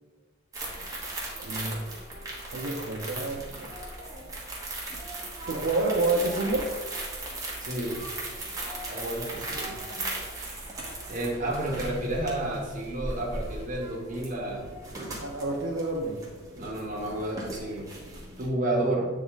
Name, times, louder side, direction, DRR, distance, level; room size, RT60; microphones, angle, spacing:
sound 1, 0.5-18.5, right 2 dB, 20° right, 1.4 m, -38 dB
voice 1, 1.4-1.8 2.5-3.7 5.5-6.7 14.9-16.2, right 2 dB, 70° right, -2 dB, 0.7 m, -29 dB
voice 2, 7.6-8.0 8.9-9.8 11.1-14.7 16.5-17.9 18.4-19.1, right 1 dB, 40° right, -2 dB, 1.4 m, -31 dB
8.0 x 3.7 x 3.9 m, 1.4 s
head